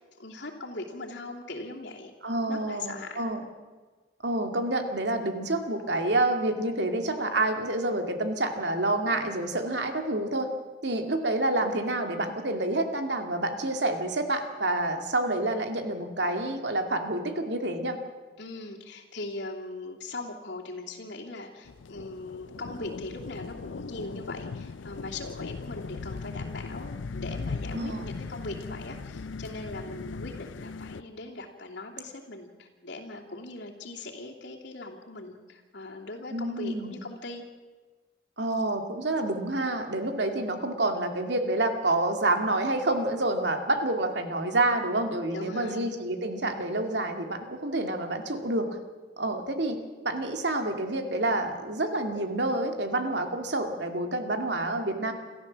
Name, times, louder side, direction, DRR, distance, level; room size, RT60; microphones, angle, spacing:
voice 1, 0.2-3.4 18.4-37.4 45.3-45.9, left 2 dB, 75° left, -2 dB, 2.9 m, -40 dB
voice 2, 2.2-3.4 4.2-10.5 10.8-18.0 27.7-28.1 36.3-36.9 38.4-48.7 49.2-49.8 50.0-55.1, right 2 dB, 70° right, 5 dB, 2.3 m, -28 dB
sound 1, 21.6-31.0, left 4 dB, 90° left, 0.5 m, -38 dB
28.0 x 14.0 x 7.4 m, 1.4 s
head